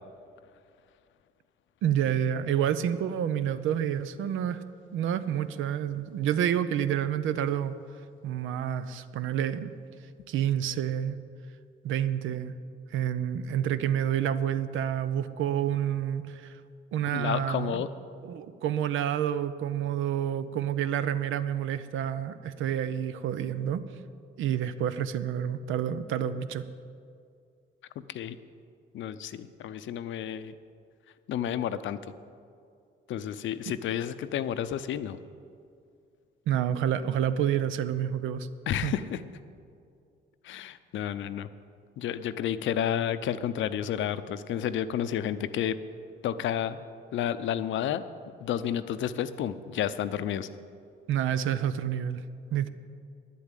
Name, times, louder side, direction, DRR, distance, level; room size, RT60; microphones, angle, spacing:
voice 1, 1.8-4.6 4.9-7.8 8.2-9.7 10.3-11.2 11.8-12.5 12.9-16.6 16.9-17.8 18.2-23.8 24.4-26.7 36.5-38.5 38.8-38.9 51.1-52.2 52.5-52.7, right 10 dB, 80° right, 13 dB, 0.6 m, -28 dB
voice 2, 17.1-17.9 28.1-28.4 28.9-30.5 31.3-32.0 33.1-35.2 38.7-39.2 40.4-41.5 42.0-45.8 46.2-46.8 47.1-48.0 48.4-50.5, left 10 dB, 75° left, 13 dB, 0.6 m, -31 dB
10.5 x 8.5 x 9.0 m, 2.3 s
cardioid pair, 90°, 20 cm